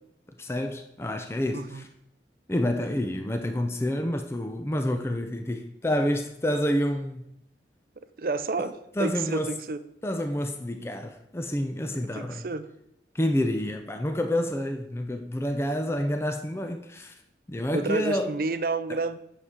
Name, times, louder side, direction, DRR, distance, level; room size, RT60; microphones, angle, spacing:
voice 1, 0.4-1.9 2.5-7.3 8.6-8.7 9.0-9.5 10.0-12.5 13.1-17.1 17.5-18.3, left 1 dB, 15° left, 0.4 m, -28 dB
voice 2, 1.5-1.8 8.2-9.8 11.9-12.7 17.7-19.2, right 3 dB, 50° right, 0.5 m, -30 dB
8.7 x 6.6 x 3.6 m
head